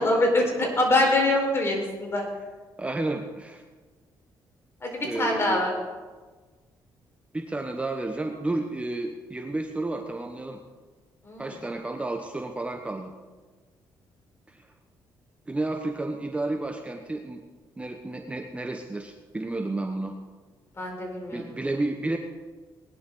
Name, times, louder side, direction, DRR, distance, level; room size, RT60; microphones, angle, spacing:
voice 1, 0.0-2.2 4.8-5.7 11.3-11.5 20.8-21.4, left 1 dB, 30° left, 0 dB, 4.8 m, -24 dB
voice 2, 2.8-3.6 5.0-5.7 7.3-10.6 11.4-13.1 14.5-14.7 15.5-17.4 17.8-20.1 21.3-22.2, right 2 dB, 15° right, 3 dB, 1.2 m, -31 dB
20.0 x 11.0 x 3.9 m, 1.3 s
cardioid pair, 95°, 8 cm